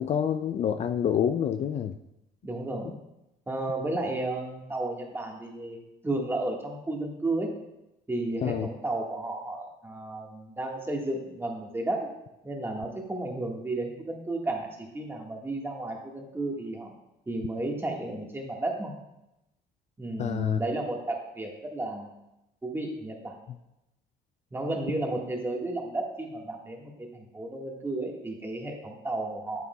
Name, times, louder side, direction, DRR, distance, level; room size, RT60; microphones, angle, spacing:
voice 1, 0.0-1.9 8.4-8.7 20.2-20.6, left 9 dB, 40° left, 9 dB, 0.4 m, -27 dB
voice 2, 2.4-3.0 3.5-7.5 8.1-12.1 12.4-16.9 17.3-18.9 20.0-22.1 22.6-23.3 24.5-29.7, right 2 dB, 15° right, 0 dB, 1.5 m, -33 dB
9.2 x 8.4 x 2.3 m, 0.90 s
cardioid pair, 110°, 17 cm